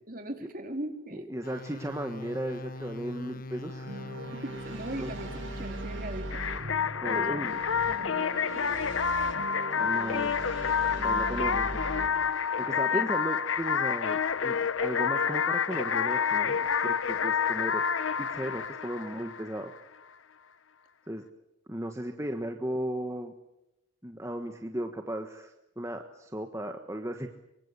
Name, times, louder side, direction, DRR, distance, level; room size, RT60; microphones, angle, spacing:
voice 1, 0.1-1.3 4.4-6.4 7.0-7.4 7.9-8.8 9.8-9.9 12.9-13.1, right 1 dB, 45° right, 5 dB, 3.7 m, -40 dB
voice 2, 1.3-4.1 5.0-5.1 7.0-7.6 9.8-10.4 10.9-11.8 12.6-17.8 18.2-19.7 21.1-21.2 21.7-23.3 24.0-27.3, right 1 dB, 15° right, 5 dB, 1.4 m, -36 dB
sound 1, 1.4-6.7, left 2 dB, 45° left, 1.2 m, -43 dB
sound 2, 3.8-12.1, right 1 dB, 70° right, 4.2 m, -39 dB
sound 3, 6.3-19.8, left 6 dB, 80° left, 0.8 m, -28 dB
24.0 x 24.0 x 8.3 m, 0.89 s
head